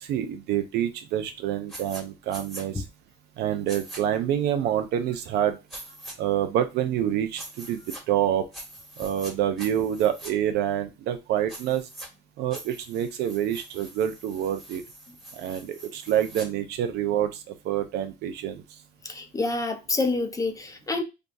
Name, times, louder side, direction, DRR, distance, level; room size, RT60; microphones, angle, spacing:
voice 1, 0.0-2.8 3.4-5.6 6.2-7.8 8.1-8.5 9.0-11.9 12.4-14.8 15.3-18.6, right 10 dB, 80° right, 0.6 m, -27 dB
sound 1, 1.7-2.0 2.3-2.6 3.7-4.0 5.7-6.1 7.4-8.0 8.5-9.3 9.6-10.3 11.5-12.1 12.5-16.5, right 1 dB, ahead, 1.2 m, -43 dB
voice 2, 19.0-21.0, left 3 dB, 20° left, 0.5 m, -28 dB
3.5 x 2.3 x 2.5 m
cardioid pair, 110°, 17 cm